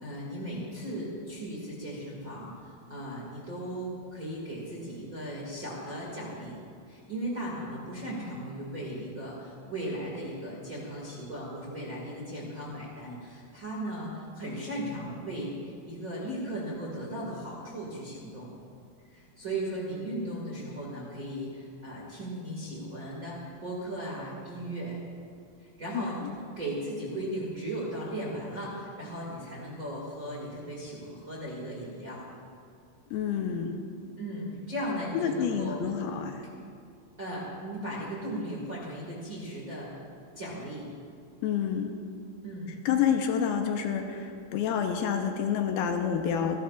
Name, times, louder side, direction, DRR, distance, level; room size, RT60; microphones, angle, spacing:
voice 1, 0.0-6.5 6.9-18.5 19.1-25.0 25.6-26.2 26.5-32.2 34.2-35.9 37.2-39.9 40.3-40.9 42.4-42.7, right 1 dB, 35° right, -5 dB, 1.5 m, -37 dB
voice 2, 25.9-26.3 33.1-33.8 35.1-36.4 41.4-41.9 42.9-46.6, left 7 dB, 80° left, 4 dB, 2.6 m, -28 dB
29.0 x 11.5 x 2.4 m, 2.3 s
omnidirectional pair, 4.6 m